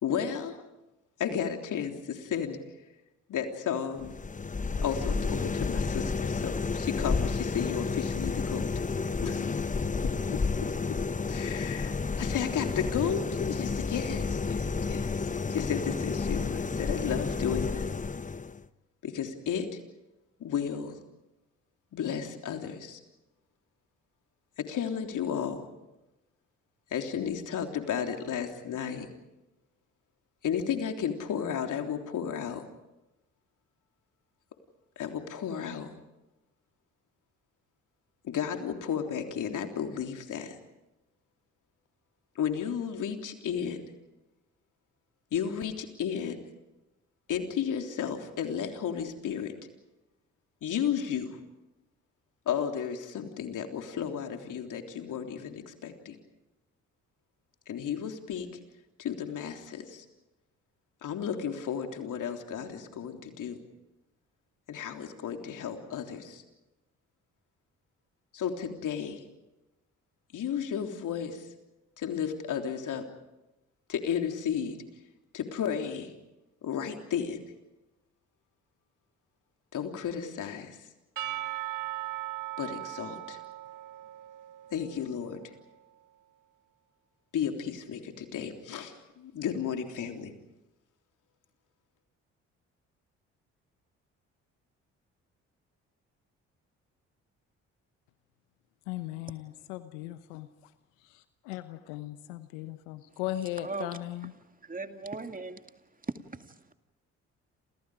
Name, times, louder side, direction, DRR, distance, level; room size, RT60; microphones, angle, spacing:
voice 1, 0.0-0.6 1.2-2.6 3.3-4.2 4.8-8.7 9.2-9.7 10.3-10.7 11.3-15.1 15.5-17.9 19.0-19.8 20.4-21.0 21.9-23.0 24.6-25.6 26.9-29.1 30.4-32.6 34.9-35.9 38.2-40.6 42.3-43.8 45.3-46.4 47.3-49.5 50.6-51.4 52.4-56.1 57.7-58.5 59.0-60.0 61.0-63.6 64.7-66.4 68.3-69.2 70.3-71.5 72.0-73.0 73.9-74.8 75.3-76.1 76.6-77.4 79.7-80.8 82.6-83.4 84.7-85.5 87.3-90.3, left 8 dB, 60° left, 4 dB, 3.5 m, -33 dB
sound 1, 4.0-18.6, left 4 dB, 20° left, 1.0 m, -31 dB
Percussion / Church bell, 81.2-85.5, right 15 dB, 60° right, 1.4 m, -38 dB
voice 2, 98.9-100.7 101.0-104.3, left 14 dB, 80° left, 12 dB, 1.1 m, -38 dB
voice 3, 103.6-104.0 104.6-105.8 106.0-106.7, right 3 dB, 25° right, 7 dB, 2.2 m, -38 dB
29.0 x 28.0 x 5.0 m, 0.97 s
hypercardioid pair, 50°, 34 cm